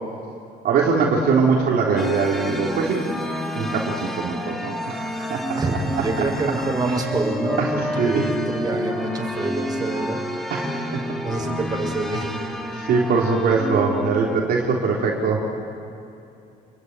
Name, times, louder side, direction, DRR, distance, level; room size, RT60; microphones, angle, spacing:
voice 1, 0.6-3.1 3.5-5.6 7.8-8.3 10.5-10.9 12.7-15.4, right 4 dB, 65° right, -2 dB, 3.3 m, -22 dB
sound 1, 2.0-14.4, equal, ahead, 2.2 m, -29 dB
voice 2, 5.6-10.6 11.2-12.3, right 2 dB, 25° right, 0 dB, 5.8 m, -27 dB
28.0 x 22.5 x 9.5 m, 2.6 s
cardioid pair, 110°, 17 cm